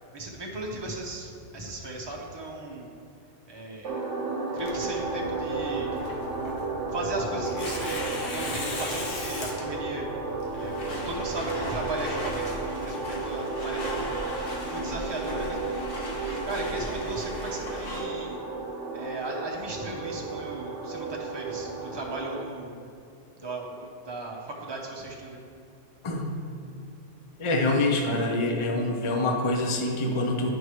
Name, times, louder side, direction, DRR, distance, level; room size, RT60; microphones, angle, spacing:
voice 1, 0.1-2.9 3.5-4.0 4.5-5.9 6.9-10.1 10.5-12.5 12.8-14.0 14.6-15.6 16.2-18.4 18.9-22.7 23.4-25.4, right 2 dB, 25° right, -1 dB, 0.8 m, -36 dB
sound 1, 3.8-22.4, right 3 dB, 70° right, 1.1 m, -33 dB
Tearing, 4.6-12.3, left 2 dB, 85° left, 1.3 m, -39 dB
sound 2, 10.4-18.0, left 1 dB, 50° left, 1.4 m, -37 dB
voice 2, 27.4-30.5, left 2 dB, 30° left, 2 dB, 0.6 m, -25 dB
10.0 x 5.4 x 3.2 m, 2.4 s
omnidirectional pair, 1.3 m